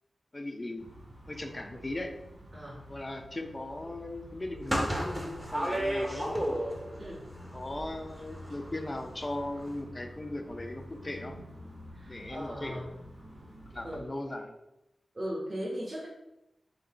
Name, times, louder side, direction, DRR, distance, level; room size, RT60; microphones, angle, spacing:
voice 1, 0.3-0.9 1.3-2.1 2.9-6.4 7.5-11.4 12.1-12.9 13.7-14.5, left 1 dB, 30° left, 4 dB, 0.6 m, -38 dB
sound 1, 0.8-14.0, equal, 85° right, 1.7 m, -48 dB
sound 2, 4.6-7.0 7.3-8.9 9.1-9.3 9.6-9.7, equal, 20° right, 0.9 m, -32 dB
voice 2, 11.9-12.9 13.8-14.1 15.1-16.1, equal, 40° right, -6 dB, 1.1 m, -38 dB
3.9 x 2.6 x 4.8 m, 0.90 s
wide cardioid pair, 70°, 0 cm